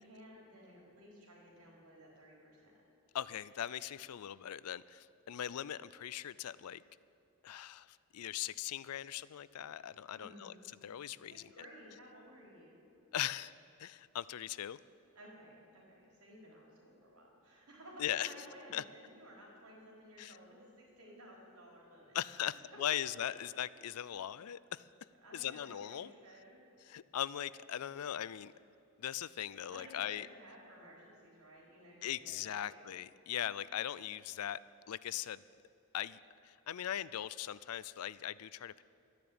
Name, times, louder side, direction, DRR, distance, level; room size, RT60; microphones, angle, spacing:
voice 1, 0.0-2.8 10.1-10.6 11.3-12.8 15.1-22.2 25.2-26.6 29.7-32.9, equal, 90° right, -2 dB, 4.2 m, -55 dB
voice 2, 3.1-6.8 7.4-10.5 10.8-11.4 13.1-13.5 13.8-14.8 18.0-18.3 18.7-18.8 20.2-20.4 22.1-24.9 25.3-26.1 26.8-28.5 29.0-30.3 32.0-34.6 34.9-35.4 35.9-38.8, left 11 dB, 80° left, 18 dB, 0.4 m, -40 dB
12.5 x 10.5 x 8.6 m, 2.7 s
head